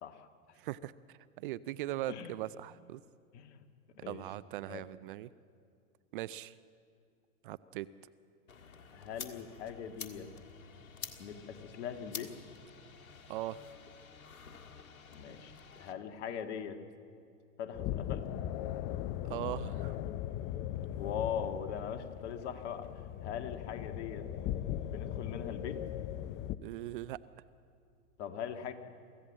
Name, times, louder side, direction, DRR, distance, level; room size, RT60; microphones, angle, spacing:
voice 1, 0.0-0.6 2.1-2.4 3.3-3.6 4.0-4.3 4.7-4.8 8.9-10.3 11.2-12.4 15.1-16.8 17.6-18.3 21.0-24.3 24.9-25.8 28.2-28.7, left 8 dB, 55° left, 7 dB, 1.8 m, -41 dB
voice 2, 0.6-0.9 1.4-3.0 4.1-5.3 6.1-6.6 7.4-7.9 13.3-13.6 19.3-20.0 26.6-27.2, right 15 dB, 40° right, 17 dB, 0.4 m, -39 dB
sound 1, 8.5-15.9, left 5 dB, 85° left, 1.8 m, -49 dB
sound 2, 17.7-26.6, left 11 dB, 30° left, 0.5 m, -38 dB
24.0 x 15.5 x 7.4 m, 2.4 s
hypercardioid pair, 110°, 42 cm